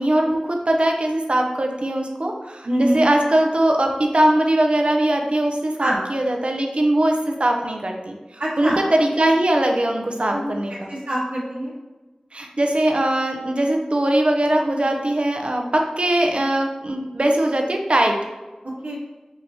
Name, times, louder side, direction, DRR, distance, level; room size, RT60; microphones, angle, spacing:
voice 1, 0.0-10.9 12.3-18.2, right 1 dB, 50° right, 2 dB, 0.7 m, -21 dB
voice 2, 2.6-3.0 5.8-6.0 8.4-8.8 10.3-10.6 10.9-11.7 18.6-19.0, right 1 dB, 75° right, -8 dB, 1.1 m, -24 dB
5.6 x 3.1 x 2.7 m, 1.2 s
wide cardioid pair, 60°, 2 cm